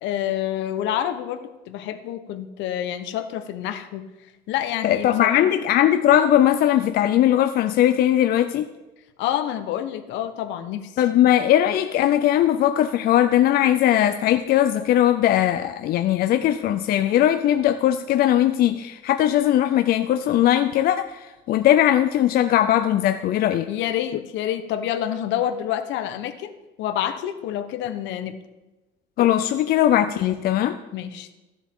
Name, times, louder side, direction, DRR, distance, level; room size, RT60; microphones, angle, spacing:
voice 1, 0.0-4.0 4.5-5.6 9.2-10.9 23.7-26.5 26.8-28.3 30.9-31.3, left 11 dB, 75° left, 10 dB, 1.0 m, -28 dB
voice 2, 4.8-8.7 11.0-23.7 29.2-30.8, left 12 dB, 50° left, 8 dB, 0.5 m, -19 dB
15.0 x 7.1 x 3.7 m, 1.1 s
cardioid pair, 130°, 19 cm